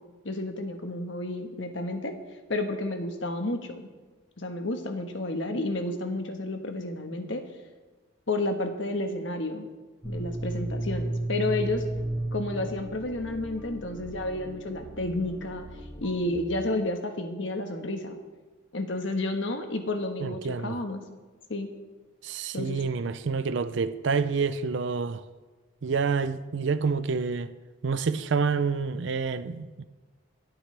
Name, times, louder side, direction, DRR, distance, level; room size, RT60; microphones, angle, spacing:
voice 1, 0.2-2.1 2.5-3.9 4.4-7.4 8.3-9.7 10.0-11.9 12.3-15.7 16.0-18.2 18.7-21.0 21.5-21.7 22.5-22.8, left 2 dB, 65° left, 1.4 m, -31 dB
sound 1, 10.0-16.4, right 1 dB, 5° right, 1.1 m, -34 dB
voice 2, 20.2-20.8 22.2-25.2 25.8-27.5 27.8-29.8, right 5 dB, 60° right, 0.5 m, -28 dB
25.5 x 8.9 x 3.4 m
head